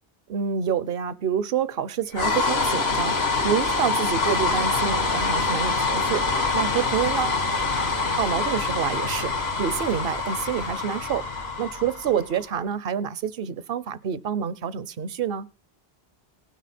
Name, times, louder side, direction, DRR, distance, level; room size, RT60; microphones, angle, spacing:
voice 1, 0.3-3.2 3.4-6.3 6.5-7.4 8.2-9.3 9.6-11.3 11.6-15.5, right 8 dB, 65° right, 0.8 m, -27 dB
sound 1, 2.1-12.4, left 3 dB, 75° left, 1.7 m, -25 dB
18.0 x 6.4 x 4.2 m
omnidirectional pair, 1.1 m